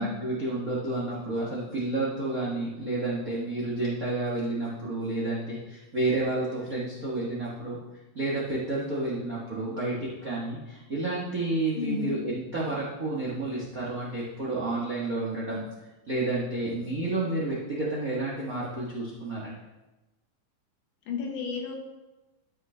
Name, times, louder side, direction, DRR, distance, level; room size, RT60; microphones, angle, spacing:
voice 1, 0.0-7.8 8.1-15.6 16.1-19.6, right 2 dB, 50° right, -5 dB, 1.0 m, -30 dB
voice 2, 11.8-12.2 21.1-21.8, left 5 dB, 70° left, 1 dB, 2.6 m, -32 dB
13.0 x 5.6 x 3.3 m, 1.1 s
omnidirectional pair, 3.9 m